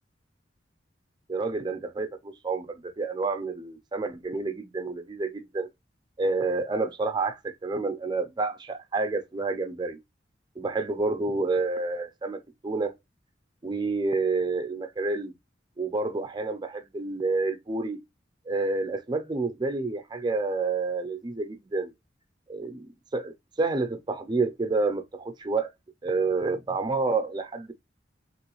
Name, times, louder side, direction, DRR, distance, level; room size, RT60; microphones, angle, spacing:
voice 1, 1.3-5.7 6.2-10.0 10.6-12.9 13.6-15.3 15.8-18.0 18.5-21.9 22.5-25.7 26.0-27.7, right 3 dB, 25° right, 0.5 m, -29 dB
3.3 x 3.0 x 2.9 m
head